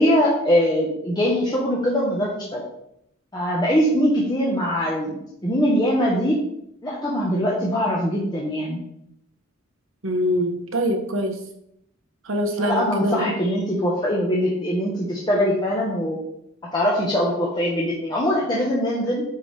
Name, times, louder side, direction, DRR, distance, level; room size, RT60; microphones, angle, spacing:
voice 1, 0.0-2.6 3.3-6.4 6.8-8.8 12.6-16.2 16.7-19.2, equal, 20° left, -4 dB, 1.1 m, -22 dB
voice 2, 10.0-11.4 12.3-13.3, equal, 65° right, 4 dB, 1.2 m, -24 dB
9.3 x 4.9 x 3.4 m, 0.76 s
head